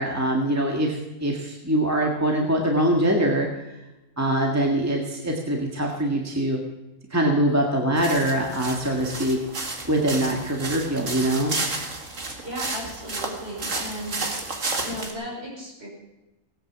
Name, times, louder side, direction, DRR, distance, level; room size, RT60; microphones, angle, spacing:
voice 1, 0.0-3.5 4.2-6.6 7.1-9.4 9.9-11.6, right 1 dB, 10° right, 0 dB, 1.9 m, -23 dB
sound 1, 8.0-15.1, right 3 dB, 70° right, 2.4 m, -32 dB
voice 2, 12.4-14.2 14.8-15.9, equal, 50° right, -3 dB, 6.4 m, -35 dB
18.5 x 9.6 x 7.5 m, 1.0 s
omnidirectional pair, 1.4 m